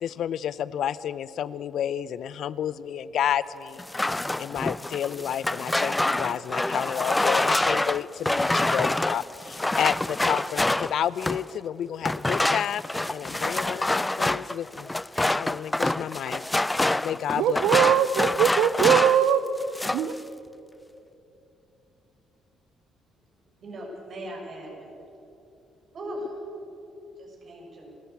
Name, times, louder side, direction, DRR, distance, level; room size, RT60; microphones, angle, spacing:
voice 1, 0.0-3.8 4.4-12.8 13.1-14.9 15.3-16.4 17.0-17.6, left 9 dB, 65° left, 0.6 m, -30 dB
sound 1, 3.8-11.5 12.0-19.3 19.6-20.1, left 2 dB, 15° left, 0.5 m, -26 dB
voice 2, 17.4-19.4 19.9-20.1, right 9 dB, 70° right, 0.7 m, -21 dB
voice 3, 23.6-24.9 25.9-26.3 27.2-27.9, equal, 55° right, 7.1 m, -38 dB
29.5 x 13.5 x 8.6 m
hypercardioid pair, 50°, 0 cm